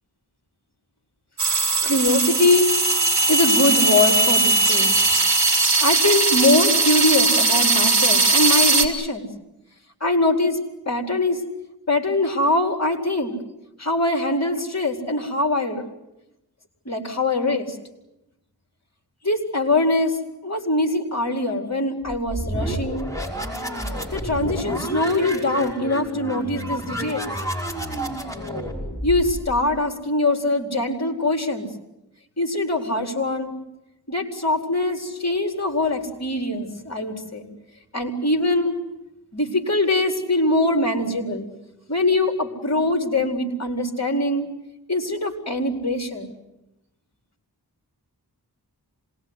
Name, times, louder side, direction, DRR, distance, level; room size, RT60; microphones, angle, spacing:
sound 1, 1.4-8.9, right 3 dB, 45° right, 4.2 m, -19 dB
voice 1, 1.8-2.7 3.3-4.9 5.8-9.3 10.0-10.6 10.9-11.4 11.9-13.3 13.8-15.8 16.9-17.8 19.2-20.2 20.4-23.1 24.1-27.3 29.0-31.7 32.4-33.5 34.1-37.5 37.9-38.7 39.3-41.5 41.9-44.5 44.9-46.3, left 2 dB, 40° left, 4 dB, 4.3 m, -22 dB
sound 2, 22.1-29.7, equal, 10° left, 5.7 m, -30 dB
26.5 x 20.5 x 9.7 m, 0.92 s
wide cardioid pair, 55°, 39 cm